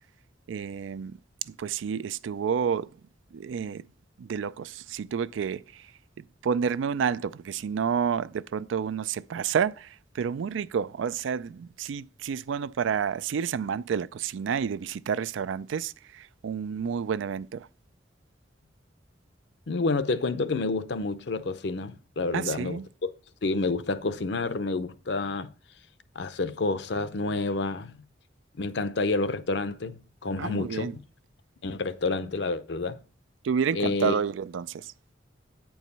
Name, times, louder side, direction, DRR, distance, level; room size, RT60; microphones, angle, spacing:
voice 1, 0.5-1.2 1.5-2.9 3.3-3.8 4.2-5.8 6.4-17.7 22.3-22.8 30.4-30.9 33.4-34.9, right 7 dB, 85° right, 0.4 m, -30 dB
voice 2, 19.7-23.1 23.4-25.5 26.2-28.0 28.6-30.9 31.6-33.0 33.7-34.1, left 3 dB, 65° left, 0.6 m, -29 dB
8.9 x 4.7 x 5.3 m
head